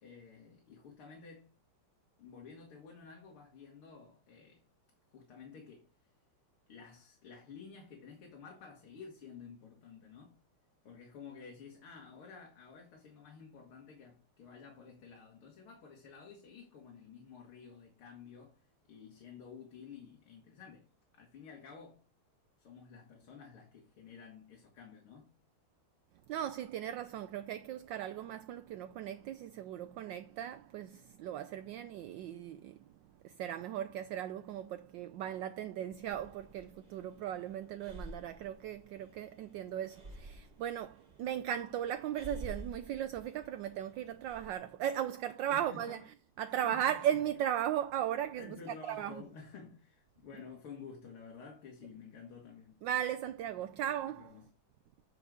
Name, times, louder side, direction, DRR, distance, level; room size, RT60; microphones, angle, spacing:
voice 1, 0.0-1.6 2.2-4.6 5.1-6.1 6.7-10.4 10.8-18.6 18.9-22.0 22.6-25.3 45.5-46.0 46.5-47.2 48.4-52.8 54.0-54.5, left 5 dB, 75° left, 2.5 m, -52 dB
voice 2, 26.3-32.8 33.2-48.6 48.9-49.2 52.8-54.3, right 10 dB, 75° right, 1.1 m, -37 dB
Breathing, 36.1-44.5, right 1 dB, 20° right, 2.1 m, -50 dB
9.1 x 4.8 x 5.0 m
omnidirectional pair, 2.4 m